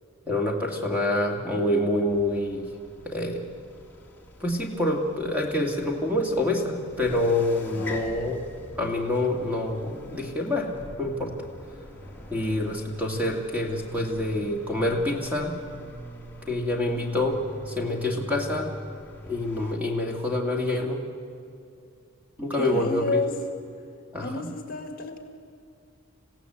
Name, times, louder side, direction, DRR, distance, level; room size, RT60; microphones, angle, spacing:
voice 1, 0.3-2.7 3.0-3.4 4.4-8.4 8.8-10.7 11.0-11.5 12.3-15.6 16.5-18.7 19.3-21.0 22.4-23.2 24.1-24.5, left 1 dB, 5° right, 0 dB, 2.4 m, -27 dB
sound 1, 2.1-19.8, equal, 10° left, 2.1 m, -43 dB
voice 2, 7.7-8.3 22.6-23.4 24.2-25.2, left 3 dB, 45° left, 5 dB, 1.9 m, -31 dB
28.0 x 16.0 x 8.1 m, 2.4 s
head